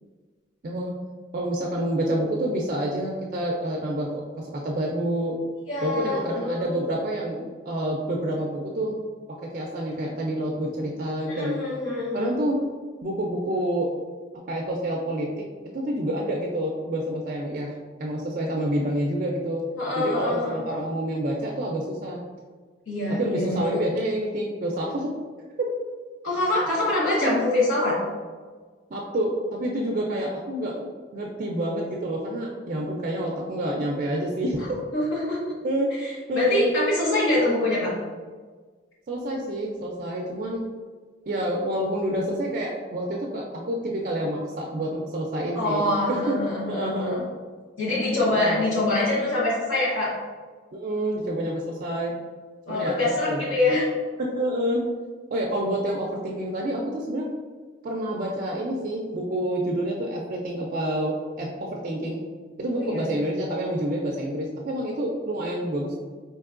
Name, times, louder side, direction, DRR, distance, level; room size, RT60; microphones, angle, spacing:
voice 1, 1.3-5.4 5.8-9.0 9.4-11.6 12.1-12.6 13.0-13.9 14.5-15.3 15.7-17.7 18.0-19.6 20.0-22.2 23.2-25.1 27.2-27.4 28.9-30.8 31.1-34.6 35.6-35.9 36.3-36.6 39.1-40.6 41.3-46.4 46.7-47.2 48.4-48.7 50.7-52.1 52.7-52.9 53.3-53.8 54.3-54.8 55.3-57.3 57.8-62.2 62.6-66.0, right 1 dB, 45° right, -1 dB, 0.4 m, -28 dB
voice 2, 5.7-6.7 11.3-12.3 19.8-20.8 22.9-23.8 26.2-28.0 34.9-35.4 36.0-37.9 45.6-47.2 47.8-50.1 52.7-53.9 62.8-63.0, left 2 dB, 90° left, -8 dB, 1.0 m, -25 dB
4.5 x 2.8 x 2.4 m, 1.5 s
head